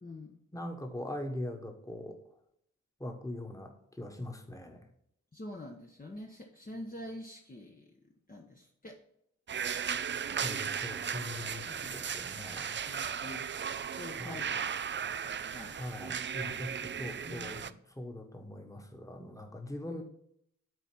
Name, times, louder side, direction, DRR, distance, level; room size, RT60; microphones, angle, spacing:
voice 1, 0.0-0.4 5.3-7.9 8.3-9.0 10.4-10.6 11.7-12.0 12.9-13.5 13.9-14.7 15.2-15.8 17.0-17.8 19.8-20.0, left 1 dB, 30° left, 0 dB, 1.1 m, -46 dB
voice 2, 0.5-2.2 3.0-4.9 10.3-12.8 14.2-14.4 15.8-20.0, left 1 dB, 10° left, 3 dB, 1.5 m, -42 dB
sound 1, 9.5-17.7, right 7 dB, 40° right, 0.4 m, -36 dB
8.1 x 4.1 x 5.9 m, 0.73 s
cardioid pair, 65°, 30 cm